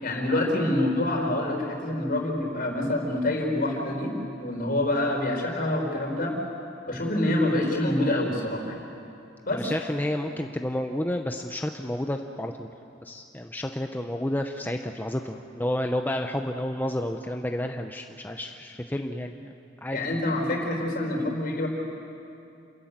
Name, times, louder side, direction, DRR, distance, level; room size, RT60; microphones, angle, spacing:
voice 1, 0.0-4.1 4.4-6.3 6.9-8.8 9.5-9.7 19.9-21.7, left 1 dB, 55° left, 1 dB, 4.4 m, -26 dB
voice 2, 9.5-12.7 13.0-19.4 19.8-20.0, left 1 dB, 10° left, 4 dB, 0.7 m, -30 dB
28.5 x 14.0 x 8.8 m, 2.7 s
head